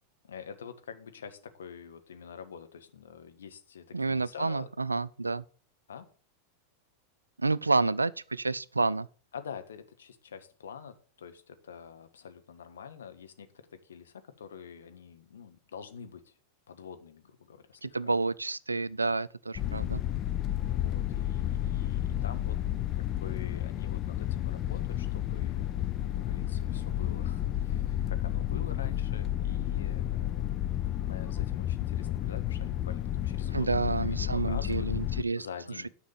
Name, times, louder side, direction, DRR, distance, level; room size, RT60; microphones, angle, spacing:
voice 1, 0.2-4.7 5.9-6.1 9.3-16.3 16.7-18.1 20.7-22.6 22.9-25.7 26.0-30.6 31.0-34.9 35.2-35.9, left 7 dB, 65° left, 1.4 m, -46 dB
voice 2, 3.9-5.4 7.4-9.1 17.8-20.0 33.5-35.5, right 3 dB, 80° right, 0.4 m, -29 dB
sound 1, 19.6-35.2, left 12 dB, 35° left, 0.7 m, -31 dB
10.0 x 5.9 x 7.2 m
figure-of-eight pair, 90°, 0 cm